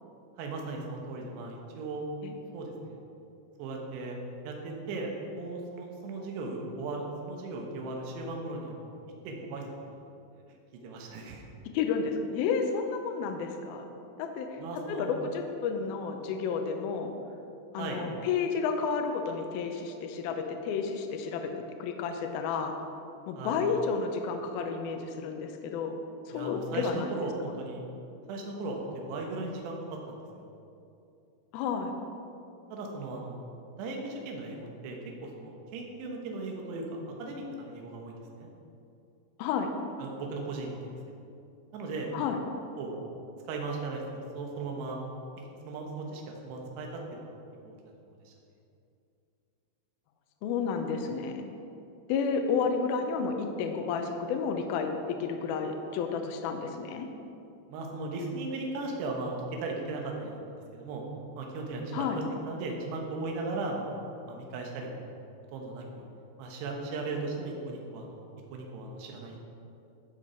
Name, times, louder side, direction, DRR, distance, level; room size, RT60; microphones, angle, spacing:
voice 1, 0.4-2.0 2.5-3.0 3.6-4.2 4.4-9.0 9.2-9.6 10.8-11.4 14.6-15.1 17.8-18.0 23.4-23.6 26.3-27.8 28.3-30.5 32.7-33.4 33.8-38.5 40.0-40.9 41.7-42.1 42.8-42.9 43.5-45.0 45.6-47.2 47.6-47.9 48.3-48.4 57.7-60.4 60.7-61.0 61.3-65.0 65.5-66.0 66.4-68.2 68.5-69.4, right 3 dB, 70° right, 0 dB, 3.2 m, -37 dB
voice 2, 11.7-13.9 14.2-14.6 14.9-17.1 17.7-22.8 23.3-26.0 26.3-27.2 31.5-31.9 39.4-39.7 42.1-42.4 50.4-51.5 52.1-57.1 61.9-62.2, left 5 dB, 90° left, 5 dB, 2.2 m, -31 dB
15.0 x 6.2 x 4.5 m, 2.7 s
omnidirectional pair, 5.2 m